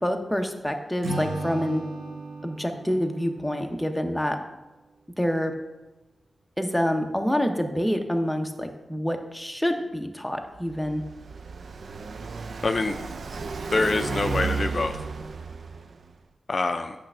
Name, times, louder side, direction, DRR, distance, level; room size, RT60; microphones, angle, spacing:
voice 1, 0.0-1.8 2.4-4.4 5.2-5.5 6.6-11.0, equal, 5° left, 4 dB, 0.7 m, -27 dB
Acoustic guitar / Strum, 1.0-4.3, right 2 dB, 85° right, 1.1 m, -35 dB
Car passing by, 10.5-16.1, right 4 dB, 65° right, 0.4 m, -33 dB
voice 2, 12.6-13.0 13.7-15.0 16.5-16.9, left 3 dB, 45° left, 7 dB, 0.4 m, -25 dB
8.5 x 3.3 x 6.0 m, 1.1 s
wide cardioid pair, 85°, 0 cm